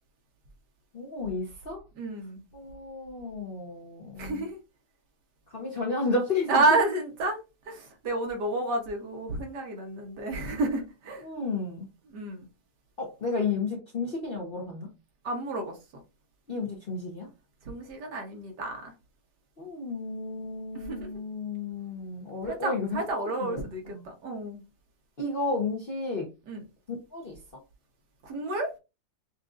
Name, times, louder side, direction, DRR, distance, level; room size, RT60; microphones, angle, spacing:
voice 1, 0.9-1.8 2.5-4.5 5.5-6.6 11.2-11.9 13.0-14.9 16.5-17.3 19.6-23.6 23.9-24.0 25.2-26.3 27.1-27.4, left 3 dB, 45° left, 0.7 m, -32 dB
voice 2, 2.0-2.4 4.2-4.6 6.5-7.4 7.7-11.2 12.1-12.4 15.2-15.8 17.6-18.9 20.7-21.1 22.5-24.6 26.5-26.6 28.2-28.7, right 2 dB, 65° right, 1.6 m, -30 dB
6.0 x 2.5 x 2.4 m
omnidirectional pair, 2.0 m